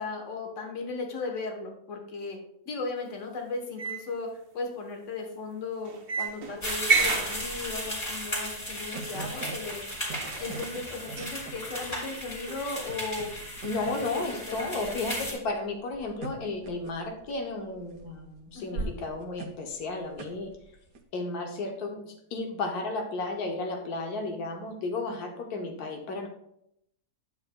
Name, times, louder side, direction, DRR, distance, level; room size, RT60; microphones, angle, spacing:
voice 1, 0.0-2.4 2.7-4.3 4.5-9.8 10.4-13.3 13.8-15.4 18.5-18.9, left 3 dB, 55° left, 2 dB, 1.5 m, -36 dB
sound 1, 3.8-4.1 5.8-7.9 8.6-8.7 9.8-9.9 10.1-10.5 11.2-11.4, right 5 dB, 50° right, 0.8 m, -29 dB
sound 2, 6.2-21.0, right 3 dB, 75° right, 1.3 m, -42 dB
sound 3, 6.6-15.3, equal, 25° left, 2.2 m, -36 dB
voice 2, 13.6-20.5 21.1-26.3, left 3 dB, 85° left, 3 dB, 1.4 m, -33 dB
9.5 x 7.1 x 2.2 m, 0.77 s
omnidirectional pair, 1.6 m